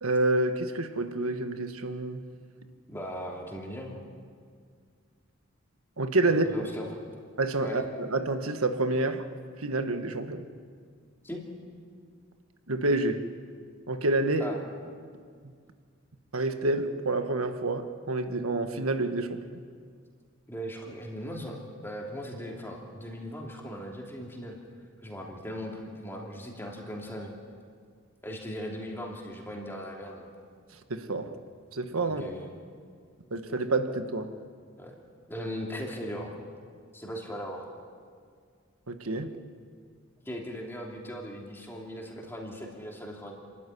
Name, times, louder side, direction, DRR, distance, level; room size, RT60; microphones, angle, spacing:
voice 1, 0.0-2.2 6.0-6.4 7.4-9.2 9.6-10.4 12.7-13.2 13.9-14.5 16.3-19.6 30.9-31.4 31.7-32.2 33.3-34.3 38.9-39.3, right 2 dB, 85° right, 8 dB, 1.6 m, -28 dB
voice 2, 2.9-4.0 6.2-7.0 7.6-7.8 11.2-11.4 14.4-14.6 20.5-21.6 21.8-24.6 25.0-27.3 28.2-30.3 32.0-32.5 34.8-35.0 35.3-36.3 36.9-37.7 40.2-43.3, equal, 10° left, -2 dB, 3.0 m, -38 dB
29.5 x 13.5 x 10.0 m, 2.1 s
head